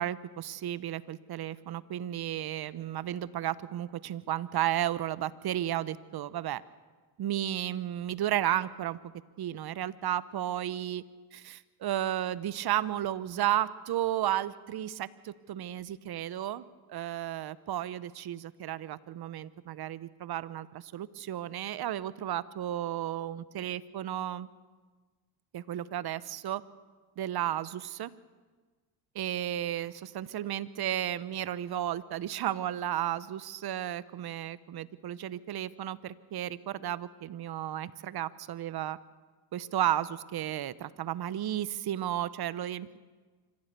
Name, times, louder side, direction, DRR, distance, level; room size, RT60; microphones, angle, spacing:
voice 1, 0.0-6.6 7.2-9.0 9.4-11.0 11.3-24.5 25.5-26.6 27.2-28.1 29.1-39.0 39.5-43.0, right 12 dB, 50° right, 18 dB, 1.0 m, -33 dB
26.0 x 15.0 x 6.8 m, 1.4 s
supercardioid pair, 75°, 49 cm